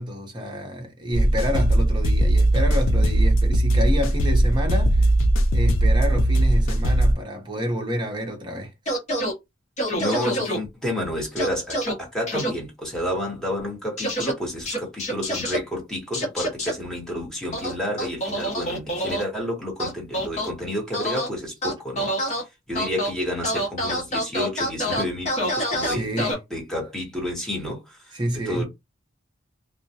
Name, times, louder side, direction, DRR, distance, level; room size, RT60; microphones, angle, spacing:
voice 1, 0.0-5.1 5.5-8.7 25.8-26.4 28.1-28.6, equal, 25° right, 0.7 m, -28 dB
sound 1, 1.1-7.1, right 1 dB, 75° left, 0.5 m, -19 dB
sound 2, 8.9-9.3 9.8-10.6 11.4-11.9 12.3-12.5 14.0-14.3 14.7-15.6 16.1-16.7 17.5-19.2 19.8-20.5 20.9-21.3 21.6-22.4 22.7-23.1 23.4-26.3, equal, 35° left, 0.9 m, -26 dB
voice 2, 10.0-22.1 22.7-28.0 28.5-28.7, left 1 dB, 5° left, 1.0 m, -30 dB
2.2 x 2.1 x 2.7 m
head